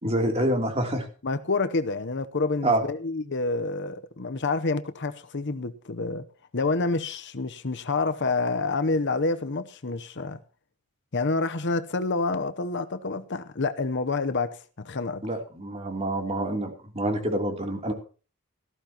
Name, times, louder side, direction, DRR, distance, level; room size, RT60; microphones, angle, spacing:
voice 1, 0.0-1.0 2.6-2.8 15.2-17.9, right 1 dB, 30° right, 3.2 m, -27 dB
voice 2, 1.2-6.2 6.5-10.4 11.1-15.2, left 3 dB, 55° left, 0.9 m, -28 dB
18.0 x 14.0 x 3.0 m
head